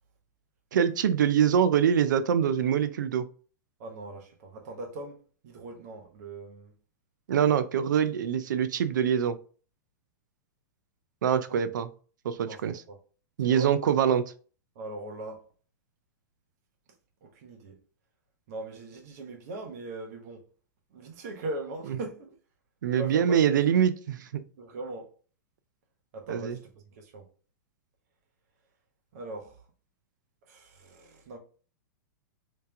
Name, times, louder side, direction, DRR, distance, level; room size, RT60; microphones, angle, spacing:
voice 1, 0.7-3.3 7.3-9.4 11.2-11.9 12.2-12.8 13.4-14.2 22.8-24.4 26.3-26.6, right 8 dB, 80° right, 0.4 m, -24 dB
voice 2, 3.8-6.7 11.5-11.7 12.4-12.6 12.9-13.0 13.5-13.7 14.7-15.4 17.2-17.8 18.5-20.4 20.9-22.3 23.0-23.8 24.6-25.1 26.1-27.2 29.1-29.6 30.5-31.4, right 2 dB, 60° right, 1.1 m, -40 dB
3.3 x 3.2 x 3.4 m
hypercardioid pair, 135°, 10 cm